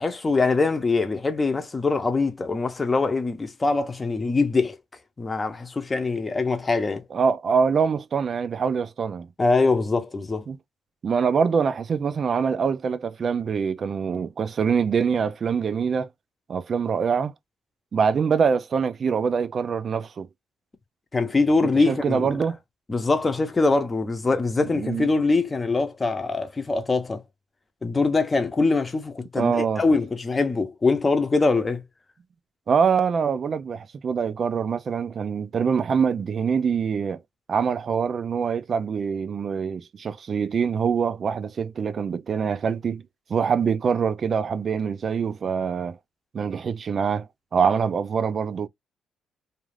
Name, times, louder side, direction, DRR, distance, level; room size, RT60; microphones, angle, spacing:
voice 1, 0.0-4.8 5.2-7.0 9.4-10.4 21.1-22.4 22.9-27.2 27.8-31.8, left 3 dB, 25° left, 0.7 m, -23 dB
voice 2, 7.1-9.3 10.5-10.6 11.0-16.1 16.5-17.3 17.9-20.3 21.6-22.6 24.7-25.1 29.4-29.8 32.7-37.2 37.5-43.0 43.3-46.0 46.3-47.3 47.5-48.7, right 6 dB, 50° right, 0.4 m, -24 dB
2.4 x 2.4 x 3.2 m
cardioid pair, 90°, 0 cm